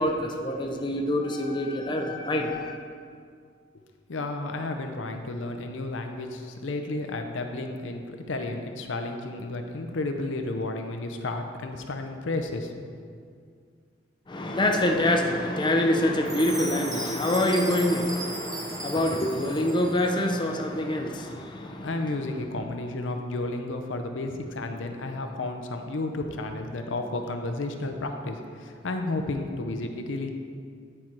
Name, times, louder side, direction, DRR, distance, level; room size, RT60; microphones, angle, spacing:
voice 1, 0.0-2.8 14.3-21.9, left 1 dB, 25° left, 2 dB, 0.6 m, -26 dB
voice 2, 4.1-12.7 13.0-13.1 21.8-30.3, left 2 dB, 85° left, 5 dB, 0.6 m, -32 dB
Chime, 16.3-20.3, right 3 dB, 20° right, 0.7 m, -37 dB
9.8 x 4.4 x 4.6 m, 2.1 s
head